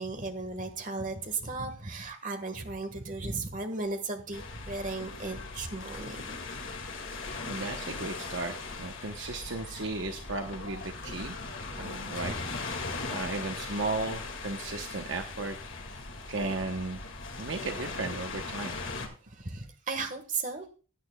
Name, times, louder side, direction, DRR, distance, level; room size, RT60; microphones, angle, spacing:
voice 1, 0.0-6.4 19.2-20.7, right 3 dB, 35° right, 7 dB, 1.5 m, -35 dB
sound 1, 4.3-19.1, left 3 dB, 60° left, 2.1 m, -39 dB
voice 2, 7.1-11.3 11.8-12.4 13.1-15.6 16.3-17.0 17.4-18.8, right 3 dB, 55° right, 5 dB, 0.9 m, -35 dB
16.0 x 9.6 x 2.3 m, 0.36 s
head